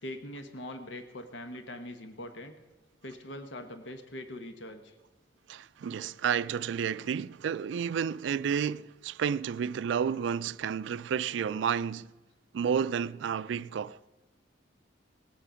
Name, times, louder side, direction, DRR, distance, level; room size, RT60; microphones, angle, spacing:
voice 1, 0.0-2.5 3.0-4.9, left 1 dB, 75° left, 1.1 m, -42 dB
voice 2, 5.5-12.1 12.5-14.1, right 7 dB, 75° right, 0.3 m, -31 dB
19.0 x 8.4 x 5.0 m
head